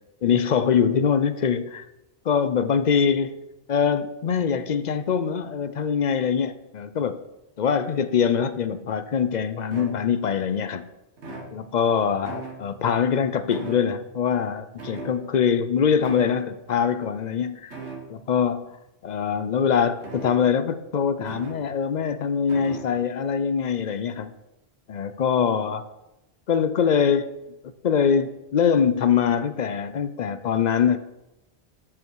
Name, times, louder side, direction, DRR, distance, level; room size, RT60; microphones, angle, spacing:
voice 1, 0.2-1.9 2.3-3.4 3.7-7.2 7.6-10.8 11.5-17.7 18.1-18.8 19.0-24.3 24.9-25.8 26.5-27.4 27.6-31.0, left 7 dB, 50° left, 12 dB, 0.6 m, -23 dB
sound 1, 9.0-9.1 9.7-10.4 11.2-11.9 12.2-13.0 13.5-14.3 14.8-15.6 16.0-16.5 17.7-18.3 20.0-20.7 21.3-21.8 22.5-23.1, right 3 dB, 85° right, 1.7 m, -39 dB
12.5 x 5.4 x 4.7 m, 0.95 s
omnidirectional pair, 1.1 m